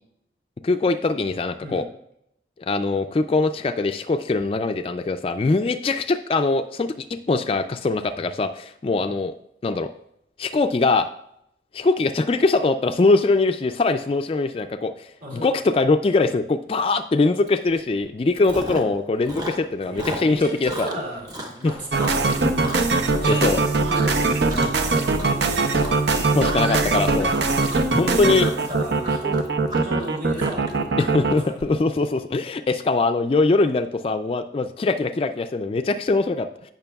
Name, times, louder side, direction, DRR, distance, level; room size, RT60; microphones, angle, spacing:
voice 1, 0.6-1.8 2.6-9.3 9.6-9.9 10.4-11.1 11.7-20.9 21.6-21.7 23.2-23.6 26.3-27.3 27.9-28.5 31.0-36.7, left 3 dB, 30° left, 8 dB, 0.3 m, -22 dB
voice 2, 15.2-15.5 18.8-18.9 19.9-22.8 23.2-25.8 28.0-29.4 29.7-31.6, right 1 dB, 50° right, -3 dB, 3.1 m, -35 dB
Chewing mastication, 17.5-17.7 18.0-19.0 19.2-23.6 23.9-24.2 24.5-24.9 25.1-31.7, equal, 20° right, 1.0 m, -35 dB
sound 1, 21.9-31.3, right 3 dB, 80° right, 0.7 m, -21 dB
15.5 x 5.9 x 2.3 m, 0.76 s
head